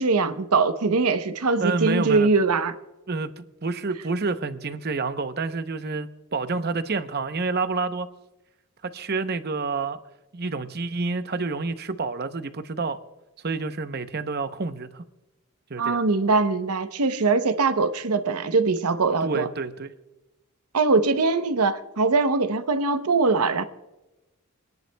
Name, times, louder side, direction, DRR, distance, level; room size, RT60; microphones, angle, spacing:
voice 1, 0.0-2.7 15.8-19.5 20.7-23.6, right 4 dB, 85° right, 0.8 m, -22 dB
voice 2, 1.6-2.3 3.1-8.1 8.8-10.0 10.3-13.0 13.4-15.0 15.7-16.0 19.2-19.9, right 3 dB, 45° right, 0.7 m, -28 dB
29.0 x 10.5 x 2.2 m
head